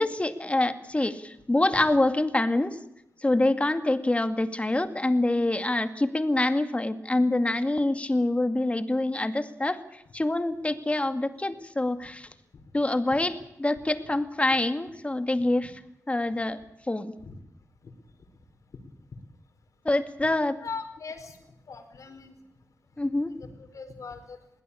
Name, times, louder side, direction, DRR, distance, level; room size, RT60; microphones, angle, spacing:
voice 1, 0.0-2.8 3.2-9.8 10.1-12.3 12.7-15.7 16.1-16.6 16.9-17.1 19.8-20.5 23.0-23.3, left 2 dB, 20° left, 9 dB, 2.2 m, -25 dB
voice 2, 20.6-21.4 21.7-22.3 23.3-24.4, left 4 dB, 70° left, 7 dB, 4.7 m, -40 dB
21.5 x 17.5 x 8.6 m, 0.82 s
cardioid pair, 60°, 6 cm